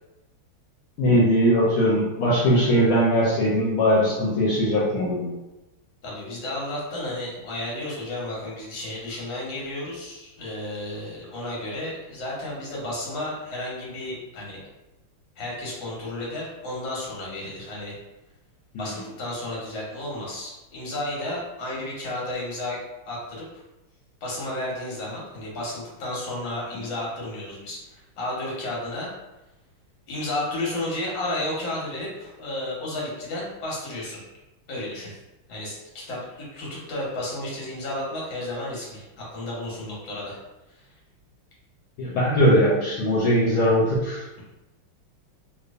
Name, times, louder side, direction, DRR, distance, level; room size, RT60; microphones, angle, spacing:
voice 1, 1.0-5.3 18.7-18.9 42.0-44.4, equal, 80° left, -7 dB, 1.5 m, -20 dB
voice 2, 6.0-14.6 15.4-18.0 18.8-22.8 23.1-23.5 24.2-29.1 30.1-34.2 34.7-35.2 35.5-40.4 40.7-40.9, left 1 dB, 65° left, -5 dB, 1.8 m, -32 dB
3.4 x 3.0 x 2.5 m, 1.0 s
omnidirectional pair, 2.4 m